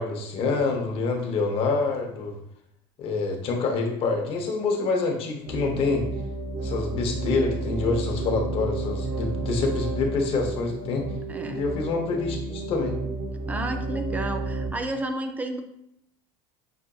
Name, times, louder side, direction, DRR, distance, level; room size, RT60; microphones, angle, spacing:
voice 1, 0.0-2.3 3.0-6.0 6.6-11.1 11.5-13.0, left 3 dB, 45° left, 2 dB, 0.8 m, -26 dB
sound 1, 5.5-14.7, right 2 dB, 70° right, 0.7 m, -31 dB
voice 2, 11.3-11.7 13.5-15.6, right 1 dB, 10° right, 6 dB, 0.4 m, -31 dB
5.7 x 2.5 x 2.3 m, 0.75 s
supercardioid pair, 125°, 13 cm